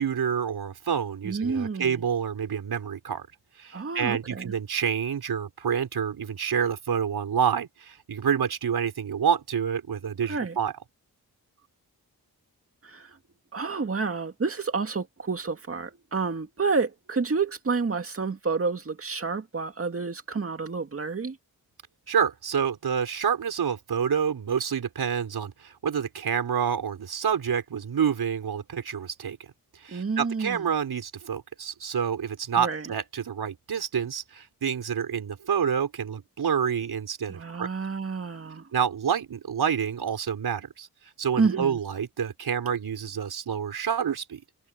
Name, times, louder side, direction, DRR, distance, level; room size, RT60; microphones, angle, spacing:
voice 1, 0.0-3.3 3.6-10.7 22.1-29.4 29.8-37.7 38.7-40.9 41.2-44.4, right 7 dB, 85° right, 4.7 m, -28 dB
voice 2, 1.2-2.0 3.7-4.5 10.3-10.6 12.8-13.2 13.5-21.4 29.9-30.7 32.6-32.9 37.3-38.7 41.4-41.8, right 4 dB, 35° right, 2.1 m, -29 dB
wide cardioid pair, 115°, 37 cm